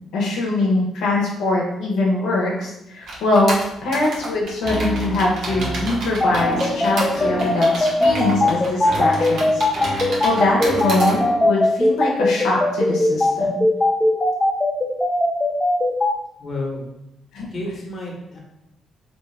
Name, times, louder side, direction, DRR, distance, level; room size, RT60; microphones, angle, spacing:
voice 1, 0.1-3.6 3.8-13.6 17.3-17.7, left 2 dB, 80° left, -2 dB, 0.5 m, -22 dB
sound 1, 3.1-11.1, right 2 dB, 70° right, 0.7 m, -31 dB
sound 2, 4.6-11.5, right 1 dB, 5° right, 0.8 m, -30 dB
sound 3, 6.2-16.1, left 2 dB, 15° left, 0.4 m, -18 dB
voice 2, 16.4-16.8 17.5-18.4, left 2 dB, 40° left, -1 dB, 0.8 m, -30 dB
2.5 x 2.3 x 3.1 m, 0.84 s
cardioid pair, 90°, 0 cm